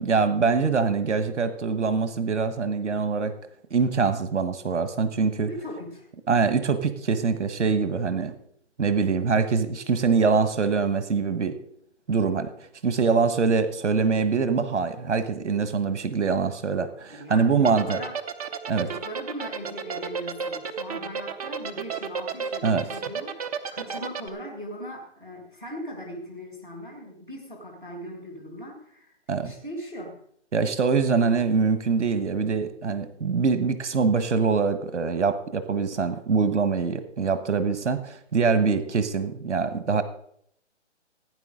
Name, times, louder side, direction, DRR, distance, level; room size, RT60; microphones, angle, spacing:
voice 1, 0.0-3.3 3.7-5.5 6.3-8.3 8.8-11.5 12.1-12.5 12.8-18.0 18.7-18.9 22.6-22.8 29.3-29.5 30.5-40.0, right 5 dB, 75° right, 11 dB, 1.3 m, -24 dB
voice 2, 5.5-6.1 17.1-18.2 18.7-29.2 29.4-30.2, equal, 5° right, -12 dB, 0.4 m, -39 dB
sound 1, 17.6-24.3, right 6 dB, 30° right, 0.8 m, -31 dB
15.5 x 9.7 x 3.7 m, 0.68 s
figure-of-eight pair, 145°, 36 cm